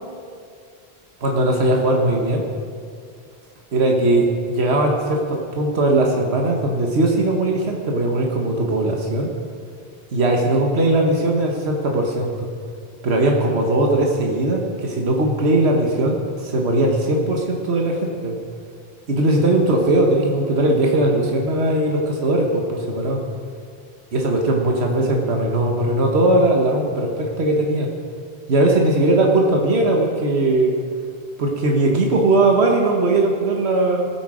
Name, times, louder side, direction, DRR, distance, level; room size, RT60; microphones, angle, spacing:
voice 1, 1.2-2.4 3.7-9.3 10.1-12.3 13.0-18.4 19.1-23.2 24.1-27.9 28.5-30.7 31.4-34.1, right 2 dB, 80° right, 1 dB, 1.6 m, -19 dB
18.5 x 8.6 x 5.0 m, 2.2 s
omnidirectional pair, 1.1 m